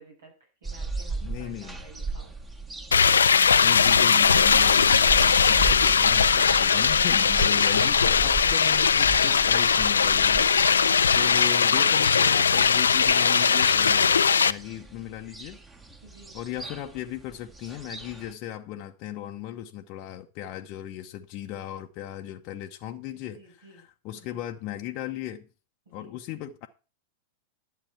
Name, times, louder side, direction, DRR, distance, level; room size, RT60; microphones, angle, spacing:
voice 1, 0.0-2.3 5.9-6.0 16.0-16.4 23.1-23.8 24.1-24.4 25.8-26.2, right 3 dB, 70° right, 6.6 m, -53 dB
sound 1, 0.6-18.3, right 3 dB, 15° right, 1.6 m, -37 dB
voice 2, 1.2-1.8 3.6-15.6 16.3-25.5 25.9-26.7, left 12 dB, 45° left, 0.8 m, -37 dB
sound 2, 2.9-14.5, left 6 dB, 75° left, 0.4 m, -20 dB
11.5 x 7.7 x 5.7 m
figure-of-eight pair, 95°, 0 cm